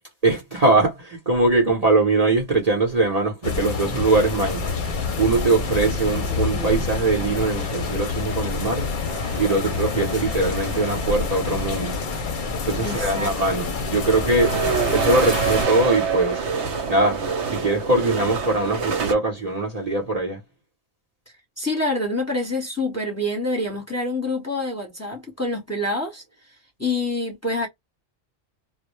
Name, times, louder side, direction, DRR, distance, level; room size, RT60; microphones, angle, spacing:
voice 1, 0.2-4.7 5.2-8.9 9.4-11.9 12.7-14.6 14.9-16.4 16.9-20.4, right 2 dB, 40° right, 0.8 m, -21 dB
sound 1, 3.4-15.7, left 4 dB, 55° left, 0.7 m, -27 dB
voice 2, 5.9-6.7 12.8-13.8 14.6-14.8 21.6-26.2 26.8-27.7, left 2 dB, 15° left, 0.9 m, -27 dB
sound 2, 9.1-11.3 12.2-12.3 12.7-19.1, right 5 dB, 80° right, 0.9 m, -27 dB
2.1 x 2.0 x 2.9 m
omnidirectional pair, 1.2 m